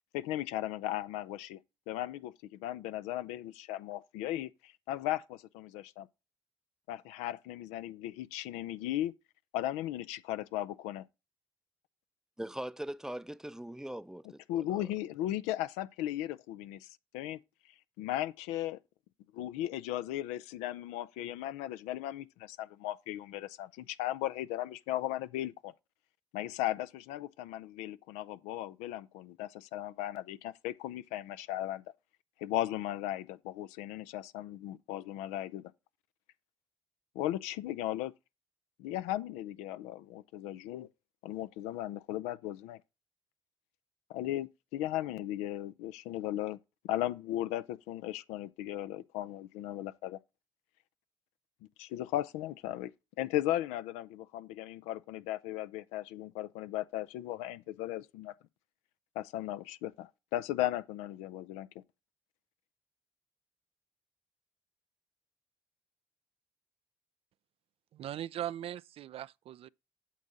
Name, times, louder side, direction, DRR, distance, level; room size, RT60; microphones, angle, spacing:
voice 1, 0.1-1.6 1.9-6.1 6.9-9.1 9.5-11.1 14.5-16.9 17.1-17.4 18.0-18.8 19.3-25.7 26.3-31.8 32.4-35.7 37.1-38.1 38.8-40.9 41.2-42.8 44.1-46.6 46.8-50.2 51.8-52.9 53.2-58.3 59.2-61.7, left 13 dB, 75° left, 0.5 m, -36 dB
voice 2, 12.4-14.9, right 1 dB, 5° right, 0.6 m, -41 dB
voice 3, 67.9-69.7, right 11 dB, 55° right, 0.4 m, -39 dB
8.4 x 7.3 x 4.0 m
hypercardioid pair, 45°, 11 cm